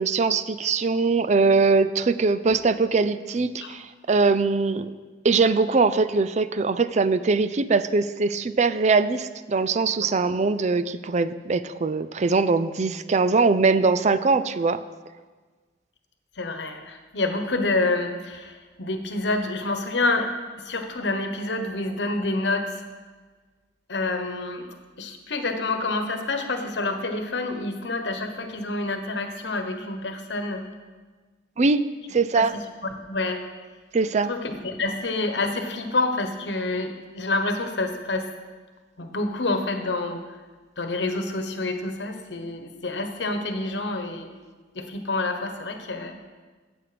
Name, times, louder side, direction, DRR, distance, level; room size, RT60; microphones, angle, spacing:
voice 1, 0.0-4.9 5.2-14.8 31.6-31.8 32.1-32.6 33.9-34.3, right 4 dB, 40° right, 13 dB, 0.5 m, -22 dB
voice 2, 16.4-20.3 20.6-22.7 23.9-30.6 32.3-32.4 32.9-33.4 34.3-38.3 39.0-40.2 40.8-44.3 44.7-46.2, left 2 dB, 80° left, 6 dB, 1.1 m, -28 dB
14.5 x 8.1 x 5.0 m, 1.4 s
head